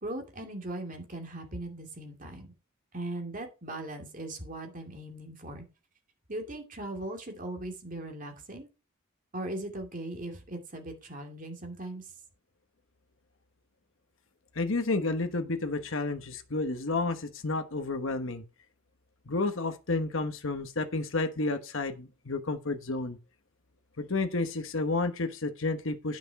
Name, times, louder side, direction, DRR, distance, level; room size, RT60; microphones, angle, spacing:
voice 1, 0.0-2.5 2.9-5.7 6.3-8.7 9.3-12.1, right 1 dB, 40° right, 2.5 m, -39 dB
voice 2, 14.5-18.4 19.3-23.2 24.0-26.2, left 3 dB, 60° left, 1.1 m, -31 dB
9.5 x 6.3 x 4.9 m
head